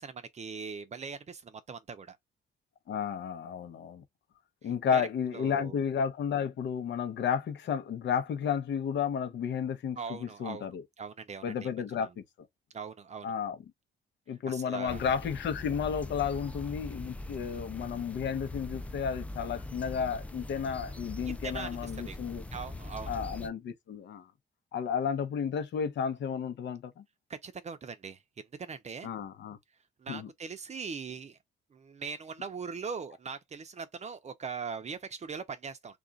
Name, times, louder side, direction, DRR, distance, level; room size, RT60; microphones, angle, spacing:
voice 1, 0.0-2.2 4.9-5.1 5.3-5.8 10.0-10.7 11.0-11.7 12.0-12.1 12.7-13.3 14.5-15.0 21.3-22.2 22.5-23.1 27.3-29.1 30.0-31.4 31.7-36.0, right 5 dB, 35° right, 0.6 m, -41 dB
voice 2, 2.9-4.0 4.6-10.8 11.4-12.2 13.2-13.6 14.3-22.4 23.1-24.3 24.7-27.0 29.0-29.6 30.1-30.3, left 7 dB, 65° left, 0.8 m, -32 dB
sound 1, 14.9-23.5, left 2 dB, 5° left, 0.3 m, -41 dB
2.4 x 2.4 x 3.9 m
cardioid pair, 90°, 20 cm